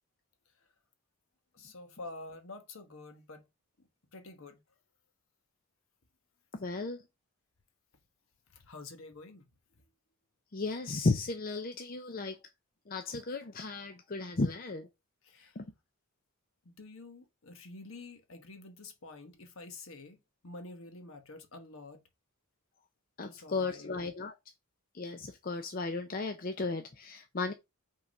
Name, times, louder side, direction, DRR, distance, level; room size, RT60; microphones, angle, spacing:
voice 1, 1.5-3.4 4.1-4.6 8.5-9.5 15.2-15.6 16.6-20.2 20.4-22.0 23.2-24.0, left 3 dB, 65° left, 1.2 m, -48 dB
voice 2, 6.5-7.0 10.5-12.4 12.9-14.9 15.6-15.7 23.2-24.3 24.9-27.5, left 3 dB, 40° left, 0.6 m, -34 dB
5.6 x 3.7 x 5.3 m
head